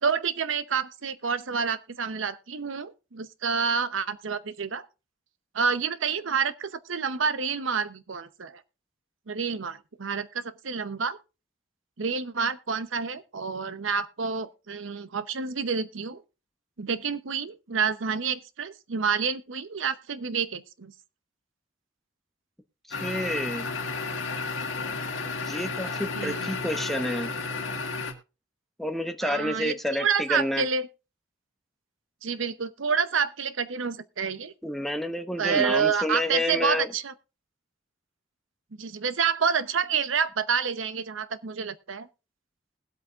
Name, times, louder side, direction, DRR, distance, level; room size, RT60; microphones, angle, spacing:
voice 1, 0.0-4.9 5.5-8.6 9.3-11.2 12.0-16.2 16.8-20.9 26.1-26.6 29.2-30.9 32.2-34.5 35.4-37.1 38.8-42.1, right 6 dB, 80° right, 0.8 m, -28 dB
sound 1, 22.9-28.1, left 4 dB, 80° left, 1.8 m, -32 dB
voice 2, 22.9-23.7 25.4-27.3 28.8-30.6 34.6-36.9, left 1 dB, ahead, 1.0 m, -29 dB
20.5 x 8.2 x 2.4 m
head